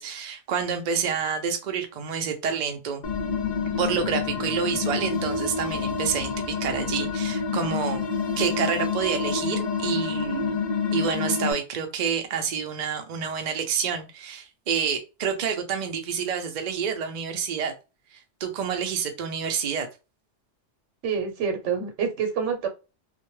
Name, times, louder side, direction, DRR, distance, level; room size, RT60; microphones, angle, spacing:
voice 1, 0.0-3.0 3.8-8.0 8.4-10.6 10.9-17.7 18.4-19.9, right 7 dB, 55° right, 0.5 m, -28 dB
sound 1, 3.0-11.5, left 5 dB, 55° left, 0.6 m, -28 dB
voice 2, 21.0-22.7, right 6 dB, 85° right, 1.1 m, -27 dB
2.2 x 2.1 x 3.0 m
omnidirectional pair, 1.2 m